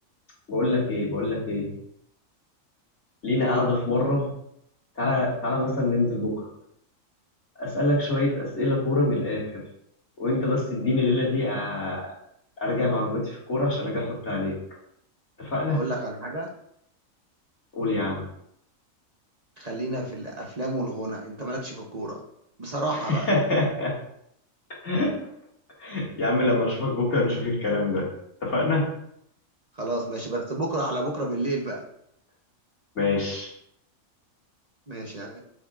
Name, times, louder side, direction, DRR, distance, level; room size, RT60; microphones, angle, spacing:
voice 1, 0.5-1.7 3.2-4.3 5.0-6.5 7.6-9.6 10.2-12.1 12.6-14.6 15.4-15.8 17.7-18.2 23.1-23.9 24.8-25.1 25.8-28.1 28.4-28.8 33.0-33.5, left 2 dB, 55° left, -5 dB, 2.4 m, -25 dB
voice 2, 15.7-16.5 19.6-22.2 22.6-23.3 29.8-31.8 34.9-35.4, right 1 dB, 35° right, 0 dB, 0.9 m, -30 dB
8.6 x 6.4 x 2.5 m, 0.73 s
omnidirectional pair, 1.4 m